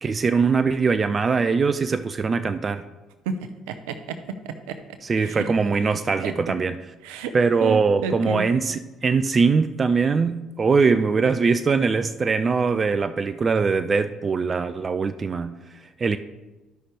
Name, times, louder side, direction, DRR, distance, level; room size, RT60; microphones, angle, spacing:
voice 1, 0.0-2.9 5.0-6.8 7.3-16.2, right 5 dB, 35° right, 0.4 m, -22 dB
voice 2, 3.3-4.8 5.2-5.4 6.2-6.3 7.0-8.4, right 5 dB, 75° right, 0.6 m, -31 dB
13.0 x 5.7 x 3.3 m
hypercardioid pair, 50°, 0 cm